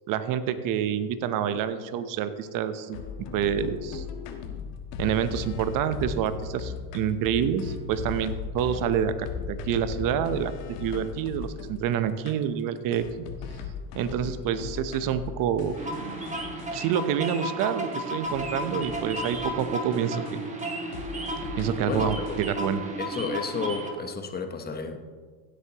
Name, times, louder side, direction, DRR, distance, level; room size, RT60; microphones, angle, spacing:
voice 1, 0.1-3.0 3.3-4.0 5.0-10.5 10.8-13.0 13.9-15.8 16.7-20.4 21.6-22.8, right 9 dB, 45° right, 11 dB, 0.9 m, -27 dB
sound 1, 2.9-11.8 12.3-12.4 12.9-17.3 17.6-17.7 17.9-18.0 18.2-20.7 20.9-22.7, left 6 dB, 85° left, 1.3 m, -38 dB
sound 2, 15.8-23.9, right 1 dB, 15° right, 1.6 m, -33 dB
voice 2, 21.9-22.3 23.0-25.0, left 4 dB, 20° left, 6 dB, 1.0 m, -32 dB
15.5 x 8.3 x 2.9 m, 1.5 s
supercardioid pair, 115°, 45 cm